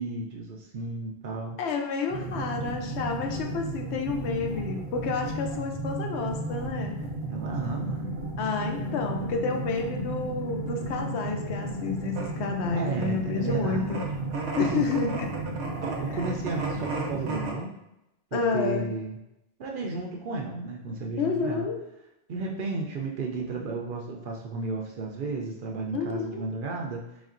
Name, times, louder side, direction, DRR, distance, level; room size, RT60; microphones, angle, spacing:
voice 1, 0.0-1.6 7.3-8.1 12.7-14.0 14.6-14.9 15.8-17.7 18.3-19.2 19.6-21.7 22.3-27.0, right 3 dB, 60° right, 0 dB, 0.6 m, -33 dB
voice 2, 1.6-7.0 8.4-14.1 14.6-15.3 16.1-16.2 18.3-18.9 21.2-21.8 25.9-26.4, left 4 dB, 75° left, 2 dB, 0.9 m, -30 dB
sound 1, 2.1-17.5, right 2 dB, 75° right, 1.0 m, -33 dB
4.2 x 3.5 x 2.5 m, 0.88 s
omnidirectional pair, 1.2 m